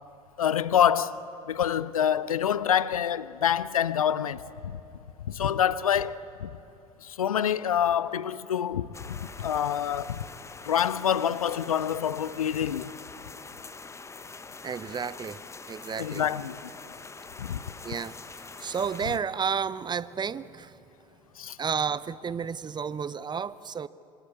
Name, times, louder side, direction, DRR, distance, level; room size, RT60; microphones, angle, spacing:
voice 1, 0.4-1.2 1.5-4.8 5.3-6.5 7.0-10.2 10.6-12.9 16.0-16.6 17.4-17.6 21.4-21.6, left 9 dB, 75° left, 0.6 m, -26 dB
sound 1, 8.9-19.2, left 4 dB, 15° left, 1.0 m, -44 dB
voice 2, 14.6-15.4 15.7-16.2 17.8-20.7 21.6-23.9, right 6 dB, 25° right, 0.7 m, -32 dB
27.0 x 24.0 x 8.3 m
figure-of-eight pair, 65°, 18 cm